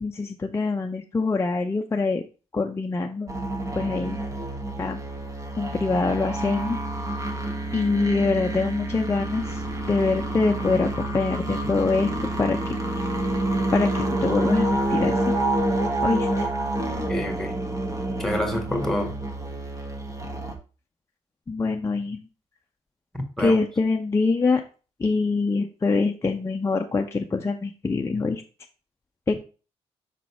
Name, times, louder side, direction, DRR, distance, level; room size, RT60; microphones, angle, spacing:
voice 1, 0.0-2.2 2.5-3.3 3.7-4.2 4.8-5.0 5.6-6.8 7.7-9.6 9.9-12.6 13.7-15.3 16.0-16.5 21.5-22.2 23.4-24.6 25.0-28.4 29.3-29.4, left 3 dB, 25° left, 0.6 m, -24 dB
sound 1, 3.3-20.5, right 1 dB, 30° right, 1.3 m, -28 dB
voice 2, 17.1-17.5 18.2-19.1 23.1-23.6, left 1 dB, 5° left, 1.7 m, -27 dB
5.8 x 4.0 x 4.7 m
cardioid pair, 80°, 11 cm